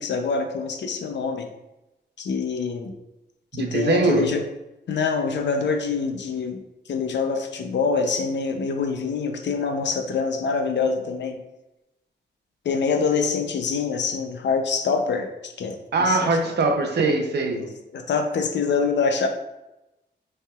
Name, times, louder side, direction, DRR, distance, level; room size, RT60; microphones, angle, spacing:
voice 1, 0.0-1.5 2.2-2.9 3.5-4.4 4.9-6.6 6.9-11.4 12.6-16.3 17.5-17.7 17.9-19.3, left 5 dB, 75° left, 4 dB, 0.6 m, -25 dB
voice 2, 3.5-4.3 15.9-17.7, right 3 dB, 65° right, 4 dB, 0.7 m, -22 dB
5.4 x 3.5 x 2.4 m, 0.95 s
wide cardioid pair, 150°, 19 cm